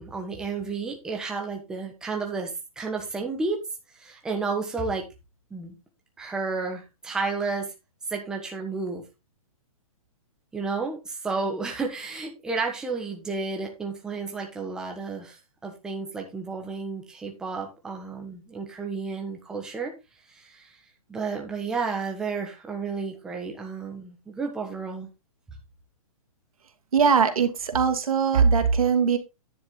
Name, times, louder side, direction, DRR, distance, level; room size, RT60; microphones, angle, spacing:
voice 1, 0.0-3.6 4.0-5.0 5.5-5.8 6.2-7.7 8.1-9.0 10.5-19.9 20.3-20.7 21.1-25.1, right 4 dB, 5° right, 1 dB, 1.3 m, -32 dB
voice 2, 26.9-29.2, right 6 dB, 75° right, 7 dB, 2.4 m, -21 dB
10.0 x 7.1 x 3.8 m, 0.25 s
hypercardioid pair, 175°, 18 cm